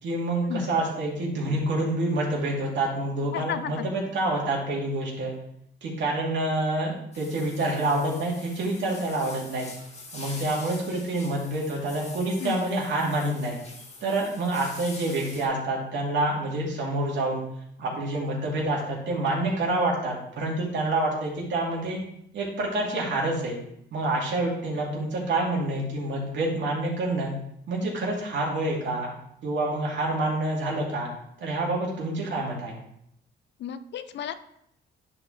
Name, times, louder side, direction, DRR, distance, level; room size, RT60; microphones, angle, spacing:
voice 1, 0.0-5.3 5.8-9.7 10.1-13.6 14.0-17.4 17.8-22.0 22.3-23.6 23.9-27.3 27.7-29.1 29.4-31.1 31.4-32.8, right 2 dB, 65° right, -3 dB, 2.5 m, -27 dB
voice 2, 3.3-3.7 12.4-12.7 33.6-34.3, left 9 dB, 65° left, 12 dB, 0.5 m, -33 dB
sound 1, 7.1-15.5, left 2 dB, 35° left, 2.0 m, -44 dB
10.5 x 4.3 x 3.2 m, 0.75 s
cardioid pair, 90°, 20 cm